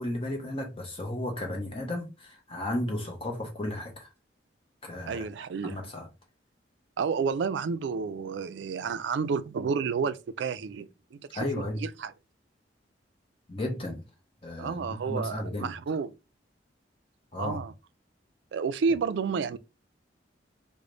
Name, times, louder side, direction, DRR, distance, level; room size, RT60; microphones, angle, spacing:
voice 1, 0.0-4.1 4.8-5.2 5.6-6.1 11.3-11.8 13.5-14.0 14.4-15.7 17.3-17.6, left 1 dB, 30° left, 0.7 m, -34 dB
voice 2, 5.1-5.8 7.0-12.1 14.6-16.2 17.4-17.7 18.5-19.6, right 5 dB, 70° right, 0.3 m, -31 dB
3.3 x 2.0 x 3.8 m
head